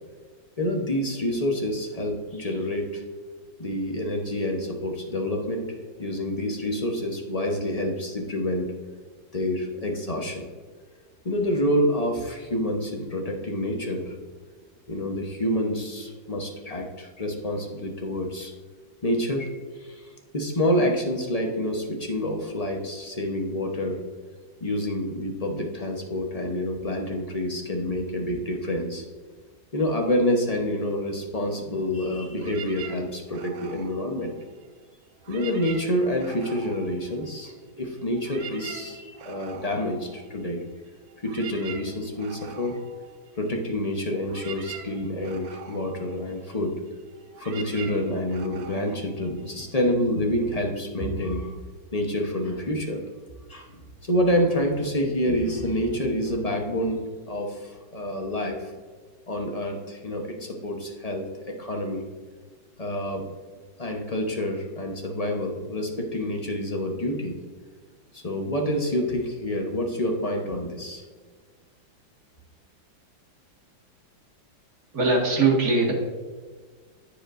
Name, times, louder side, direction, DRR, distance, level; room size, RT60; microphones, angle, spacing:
voice 1, 0.6-3.0 3.6-5.7 6.0-8.7 9.3-10.4 11.2-14.1 14.9-18.5 19.0-20.1 20.3-24.0 24.6-29.0 29.7-34.4 35.3-40.6 41.2-42.8 43.4-46.7 47.4-51.5 51.9-53.0 53.5-57.0 57.3-58.7 59.3-62.1 62.8-63.2 63.8-67.4 68.1-71.0, left 1 dB, 40° left, 1 dB, 0.5 m, -27 dB
sound 1, 32.4-34.8 35.2-37.7 38.0-49.9, right 7 dB, 65° right, 1.0 m, -44 dB
voice 2, 74.9-75.9, right 3 dB, 45° right, -2 dB, 2.2 m, -21 dB
14.5 x 5.1 x 2.5 m, 1.5 s
omnidirectional pair, 2.2 m